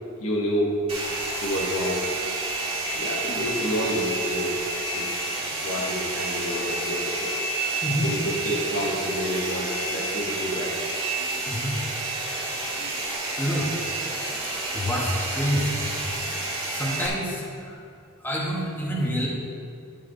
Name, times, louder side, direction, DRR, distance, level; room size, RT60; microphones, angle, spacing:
voice 1, 0.2-0.8 1.4-2.0 2.9-4.5 4.9-5.2 5.6-7.3 8.0-10.7, equal, 80° left, -4 dB, 1.6 m, -28 dB
Domestic sounds home sounds, 0.9-17.1, right 2 dB, 30° right, 2.1 m, -30 dB
voice 2, 11.5-11.8 13.4-13.7 14.7-16.0 16.7-17.7 18.2-19.3, equal, 10° left, -5 dB, 1.9 m, -27 dB
10.5 x 7.5 x 4.2 m, 2.4 s
head